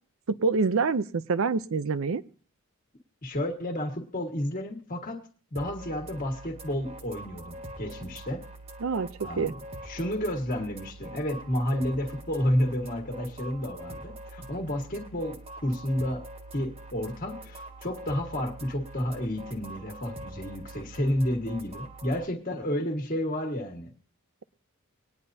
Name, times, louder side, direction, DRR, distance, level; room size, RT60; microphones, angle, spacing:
voice 1, 0.3-2.2 8.8-9.5, right 4 dB, 65° right, 15 dB, 0.5 m, -26 dB
voice 2, 3.2-5.2 5.5-8.4 9.2-9.5 9.8-16.2 16.5-23.9, left 1 dB, 40° left, 3 dB, 1.5 m, -31 dB
sound 1, 5.5-22.2, right 1 dB, 30° right, 1.1 m, -44 dB
20.5 x 9.8 x 2.7 m, 0.40 s
head